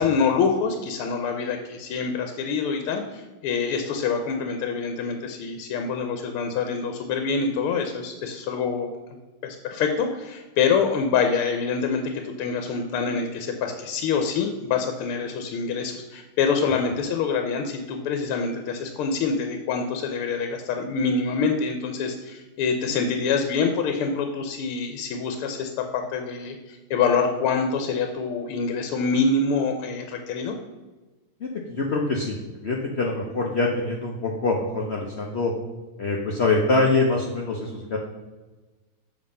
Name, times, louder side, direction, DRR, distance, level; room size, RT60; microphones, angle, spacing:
voice 1, 0.0-8.9 9.4-30.6, left 5 dB, 90° left, 5 dB, 1.7 m, -26 dB
voice 2, 31.4-32.4 32.6-35.5 36.0-38.0, left 3 dB, 60° left, 0 dB, 0.6 m, -24 dB
7.4 x 4.9 x 5.4 m, 1.2 s
omnidirectional pair, 2.3 m